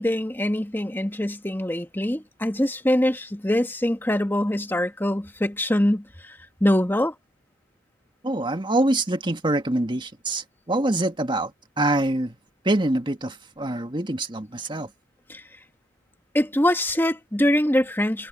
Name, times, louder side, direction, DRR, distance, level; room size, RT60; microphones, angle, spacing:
voice 1, 0.0-6.3 6.6-7.1 15.3-15.4 16.3-18.3, left 1 dB, 10° left, 1.5 m, -23 dB
voice 2, 8.2-11.5 11.8-12.3 12.6-14.9, right 1 dB, 25° right, 1.7 m, -25 dB
head